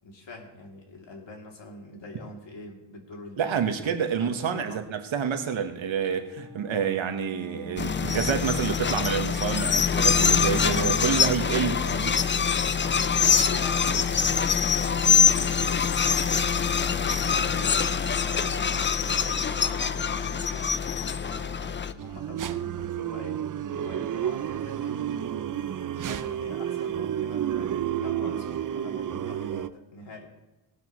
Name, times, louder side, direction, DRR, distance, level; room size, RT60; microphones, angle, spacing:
voice 1, 0.0-3.9 4.1-4.8 8.4-9.0 11.6-12.3 13.2-23.4 23.7-25.5 25.9-30.3, left 3 dB, 60° left, 0 dB, 3.0 m, -44 dB
voice 2, 3.4-12.1, right 7 dB, 70° right, 7 dB, 1.3 m, -28 dB
Bowed string instrument, 5.3-9.5, left 1 dB, 5° left, 4.6 m, -48 dB
sound 1, 7.8-21.9, left 6 dB, 25° left, 0.4 m, -24 dB
sound 2, 22.0-29.7, right 10 dB, 40° right, 0.5 m, -31 dB
17.5 x 12.5 x 3.1 m, 1.0 s
wide cardioid pair, 130°, 48 cm